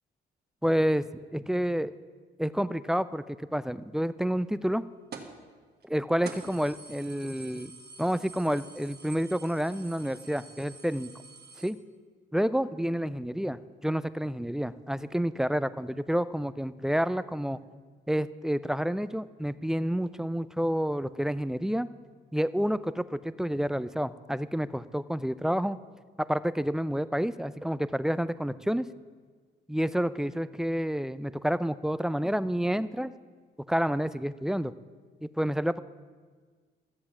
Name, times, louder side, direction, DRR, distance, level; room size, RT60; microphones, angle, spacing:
voice 1, 0.6-1.9 2.4-4.8 5.8-7.7 8.0-11.1 11.6-11.8 12.3-17.6 18.1-21.9 22.3-25.8 26.3-28.9 29.7-33.1 33.7-34.7 35.2-35.8, equal, 5° right, 15 dB, 0.4 m, -29 dB
sound 1, 5.1-5.4 5.8-5.9 6.2-11.7, right 4 dB, 55° right, 1.6 m, -47 dB
13.5 x 7.6 x 7.1 m, 1.5 s
cardioid pair, 90°, 20 cm